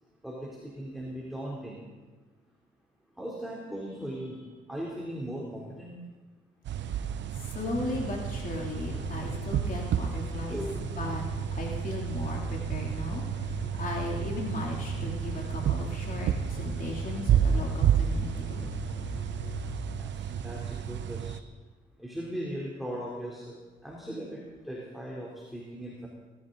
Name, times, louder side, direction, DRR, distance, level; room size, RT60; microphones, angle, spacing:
voice 1, 0.2-1.8 3.2-6.1 10.5-10.8 20.0-21.4 22.0-26.1, equal, ahead, -4 dB, 3.4 m, -38 dB
sound 1, 6.7-21.4, right 9 dB, 65° right, 0.9 m, -31 dB
voice 2, 6.9-10.6 10.9-11.2 11.5-18.7, left 2 dB, 45° left, -1 dB, 3.1 m, -37 dB
sound 2, 7.8-21.1, left 3 dB, 70° left, 3.6 m, -41 dB
21.5 x 13.5 x 4.0 m, 1.3 s
cardioid pair, 90°, 20 cm